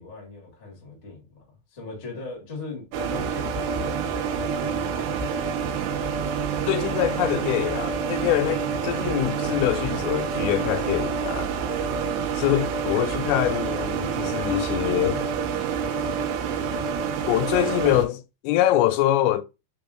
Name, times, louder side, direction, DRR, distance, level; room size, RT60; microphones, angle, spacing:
voice 1, 0.0-1.4 1.7-5.3, left 3 dB, 60° left, 0.7 m, -40 dB
sound 1, 2.9-18.1, right 6 dB, 85° right, 2.8 m, -27 dB
voice 2, 6.7-11.5 12.3-15.3 17.3-19.4, left 13 dB, 85° left, 2.7 m, -24 dB
6.0 x 3.6 x 2.4 m
omnidirectional pair, 5.0 m